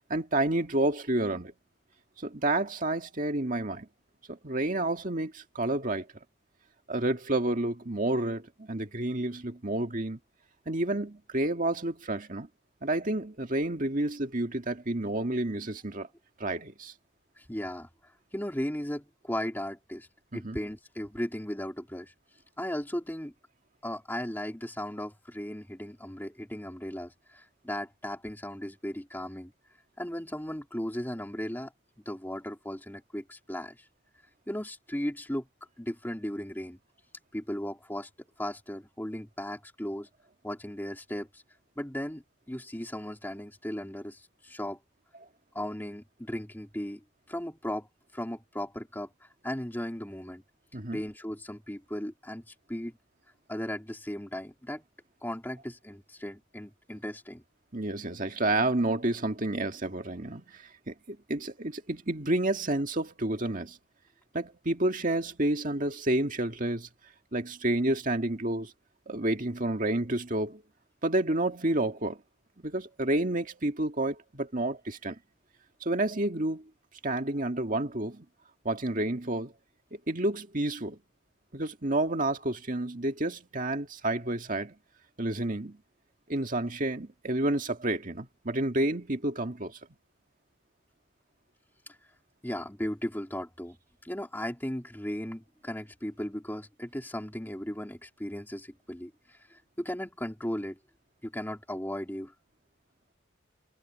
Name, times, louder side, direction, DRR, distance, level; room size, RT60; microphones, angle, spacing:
voice 1, 0.1-1.5 2.2-3.9 4.3-6.1 6.9-10.2 10.7-12.5 12.8-16.1 16.4-16.9 20.3-20.6 50.7-51.0 57.7-63.8 64.3-66.9 67.3-68.7 69.1-70.6 71.0-72.2 72.6-75.2 75.8-76.6 77.0-78.3 78.6-79.5 79.9-81.0 81.5-84.7 85.2-85.8 86.3-89.8, right 1 dB, 40° right, 2.0 m, -30 dB
voice 2, 17.4-20.1 20.3-22.1 22.6-23.3 23.8-29.5 30.0-31.7 32.1-33.9 34.5-35.5 35.8-36.8 37.3-38.1 38.4-40.1 40.4-41.4 41.8-44.8 45.5-50.4 50.9-53.0 53.5-54.8 55.2-57.4 91.9-92.0 92.4-93.8 94.0-100.8 101.2-102.3, equal, 10° left, 2.4 m, -36 dB
head